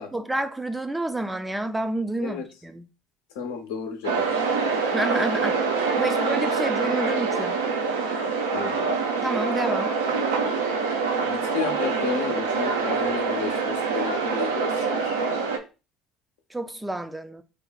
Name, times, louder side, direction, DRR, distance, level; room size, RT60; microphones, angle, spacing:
voice 1, 0.1-2.9 4.9-5.6 6.0-7.6 9.2-10.0 16.5-17.4, right 2 dB, 10° right, 0.4 m, -29 dB
voice 2, 3.3-4.4 8.5-8.9 11.2-15.2, left 6 dB, 70° left, 0.6 m, -32 dB
sound 1, 4.0-15.6, right 4 dB, 80° right, 0.5 m, -25 dB
2.6 x 2.2 x 3.9 m
hypercardioid pair, 60°, 0 cm